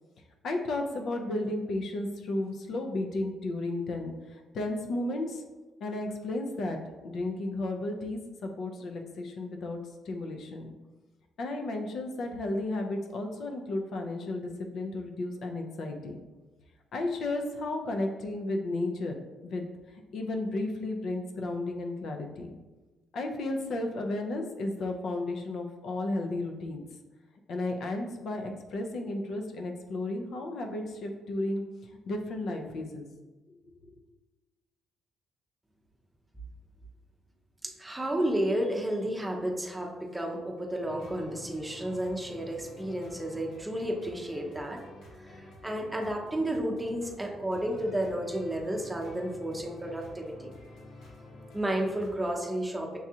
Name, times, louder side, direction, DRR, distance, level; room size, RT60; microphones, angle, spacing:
voice 1, 0.4-5.4 5.8-9.8 10.1-10.7 11.4-16.2 16.9-19.2 19.4-19.7 19.9-22.5 23.1-26.8 27.5-31.6 32.1-33.1 33.9-34.0, left 2 dB, 65° left, 3 dB, 0.5 m, -33 dB
voice 2, 37.6-44.8 45.2-50.5 51.5-53.0, right 1 dB, 10° right, 1 dB, 0.6 m, -32 dB
sound 1, 40.8-52.3, left 1 dB, 85° left, 0.9 m, -49 dB
6.0 x 2.4 x 2.8 m, 1.2 s
cardioid pair, 90°, 0 cm